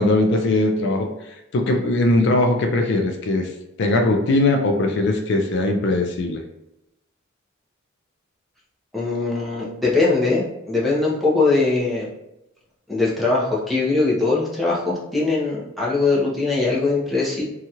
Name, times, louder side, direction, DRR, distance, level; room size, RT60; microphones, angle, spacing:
voice 1, 0.0-3.5 3.8-6.4, left 2 dB, 60° left, 4 dB, 0.4 m, -20 dB
voice 2, 8.9-12.1 12.9-17.4, left 3 dB, ahead, -7 dB, 0.7 m, -21 dB
2.8 x 2.3 x 2.8 m, 0.89 s
head